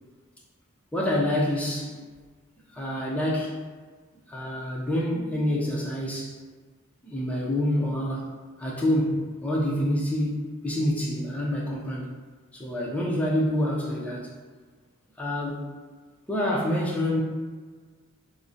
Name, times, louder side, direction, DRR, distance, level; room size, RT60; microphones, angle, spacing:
voice 1, 0.9-2.0 2.7-3.6 4.3-6.4 7.0-8.3 8.6-12.1 12.5-14.3 15.2-15.7 16.3-17.2, left 1 dB, 5° left, -4 dB, 0.4 m, -27 dB
3.6 x 2.1 x 2.6 m, 1.5 s
head